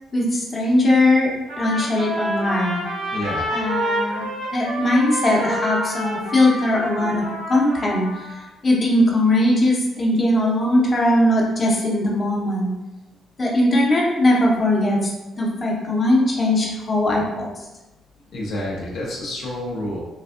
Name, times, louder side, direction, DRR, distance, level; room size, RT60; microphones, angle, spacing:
voice 1, 0.1-1.3 1.6-2.8 3.5-4.2 4.5-12.8 13.4-15.1 15.4-17.7, left 1 dB, 30° left, -3 dB, 0.7 m, -20 dB
Trumpet, 1.5-8.4, equal, 90° right, 1.2 m, -28 dB
voice 2, 3.1-3.5 18.3-20.0, left 1 dB, 75° left, -3 dB, 0.6 m, -28 dB
3.2 x 2.5 x 2.4 m, 1.0 s
cardioid pair, 90°, 0 cm